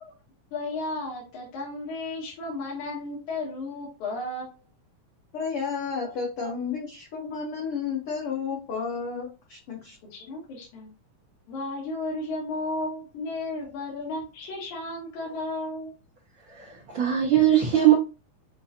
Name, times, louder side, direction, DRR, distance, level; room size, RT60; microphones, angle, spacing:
voice 1, 0.5-4.5 6.0-6.1 6.4-6.5 10.1-10.9 11.5-15.9, left 2 dB, 70° left, 2.8 m, -33 dB
voice 2, 5.3-10.0, left 5 dB, 90° left, 1.2 m, -32 dB
voice 3, 16.5-17.9, right 11 dB, 60° right, 1.5 m, -20 dB
7.0 x 2.4 x 2.7 m
omnidirectional pair, 3.7 m